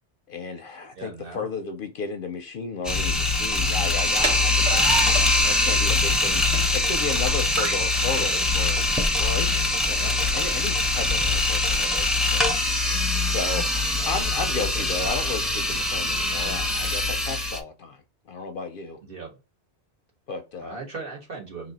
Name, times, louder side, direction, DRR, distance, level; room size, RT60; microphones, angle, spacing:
voice 1, 0.3-8.8 9.1-12.9 13.2-18.0 18.3-19.0 20.3-20.8, left 4 dB, 60° left, 0.6 m, -34 dB
voice 2, 0.9-1.5 9.9-10.2 14.0-14.9 19.0-19.4 20.6-21.7, right 4 dB, 55° right, 1.5 m, -39 dB
sound 1, 2.8-17.6, left 2 dB, ahead, 0.4 m, -23 dB
sound 2, 3.9-11.9, right 3 dB, 85° right, 1.6 m, -35 dB
3.0 x 2.8 x 4.0 m
omnidirectional pair, 1.2 m